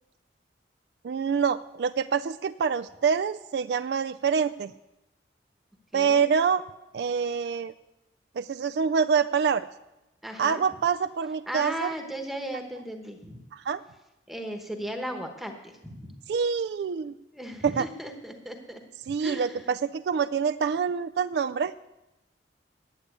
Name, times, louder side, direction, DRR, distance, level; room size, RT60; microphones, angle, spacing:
voice 1, 1.0-4.7 5.9-6.6 6.9-7.7 8.4-9.7 10.4-11.9 13.5-13.8 16.3-17.2 17.6-17.9 19.1-21.7, right 6 dB, 65° right, 12 dB, 0.3 m, -26 dB
voice 2, 5.9-6.2 10.2-10.6 11.5-13.4 14.3-15.5 15.8-16.1 17.3-18.8 19.2-19.6, equal, ahead, 3 dB, 1.0 m, -36 dB
10.0 x 8.8 x 8.4 m, 0.95 s
head